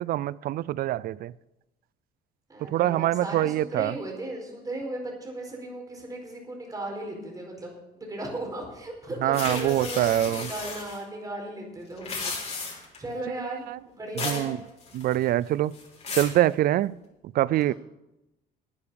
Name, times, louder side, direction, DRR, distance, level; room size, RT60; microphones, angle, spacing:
voice 1, 0.0-1.3 2.7-3.9 9.2-10.5 13.3-13.8 14.2-14.6 14.9-15.7 16.2-16.9 17.3-17.7, right 14 dB, 60° right, 0.4 m, -25 dB
voice 2, 2.5-14.6 17.6-17.7, right 1 dB, 20° right, 4.6 m, -36 dB
sound 1, 9.3-11.0 11.9-13.0 14.2-14.5 14.8-15.3 15.7-16.4, left 4 dB, 40° left, 3.7 m, -34 dB
11.0 x 9.5 x 7.0 m
cardioid pair, 110°, 17 cm